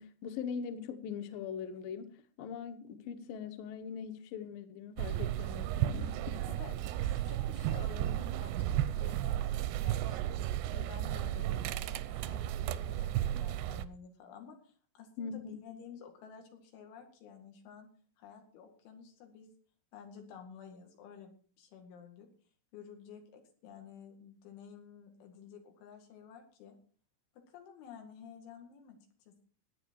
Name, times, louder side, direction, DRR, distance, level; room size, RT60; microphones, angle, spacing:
voice 1, 0.0-2.1 2.4-6.5 15.2-15.5, left 7 dB, 70° left, 2.3 m, -41 dB
sound 1, 5.0-13.9, right 12 dB, 80° right, 2.5 m, -34 dB
voice 2, 6.5-10.4 10.7-17.9 18.2-19.5 19.9-22.3 22.7-26.7 27.5-29.0 29.3-29.4, left 7 dB, 90° left, 4.6 m, -52 dB
16.5 x 10.0 x 4.6 m
omnidirectional pair, 5.3 m